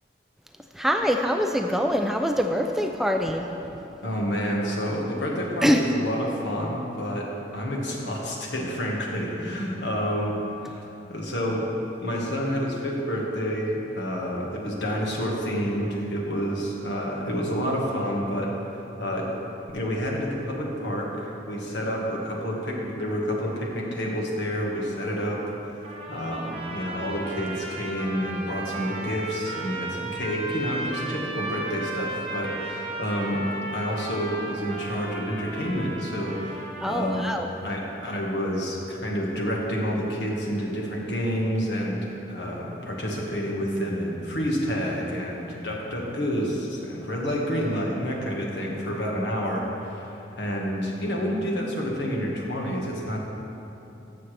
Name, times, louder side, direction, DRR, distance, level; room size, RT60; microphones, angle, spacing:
voice 1, 0.8-3.4 5.6-5.8 36.8-37.5, equal, ahead, 3 dB, 0.3 m, -24 dB
voice 2, 4.0-10.4 10.7-11.7 12.0-18.6 19.0-19.3 19.7-25.4 26.1-33.5 33.7-37.3 37.6-42.0 42.3-53.2, equal, 80° left, -2 dB, 1.5 m, -29 dB
sound 1, 25.8-37.4, right 2 dB, 35° right, 1.0 m, -35 dB
14.0 x 6.9 x 3.3 m, 3.0 s
head